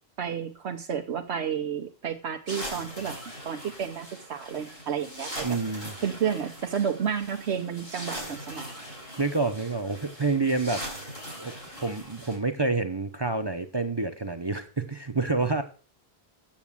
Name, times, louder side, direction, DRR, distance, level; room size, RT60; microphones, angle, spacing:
voice 1, 0.2-3.2 3.4-5.4 6.0-8.7, right 8 dB, 85° right, 2 dB, 1.2 m, -31 dB
sound 1, 2.5-12.4, equal, 70° left, 5.7 m, -41 dB
voice 2, 5.4-5.9 9.2-10.9 11.4-11.5 11.8-15.6, right 3 dB, 25° right, 7 dB, 0.8 m, -28 dB
8.8 x 7.3 x 7.3 m, 0.40 s
omnidirectional pair, 1.1 m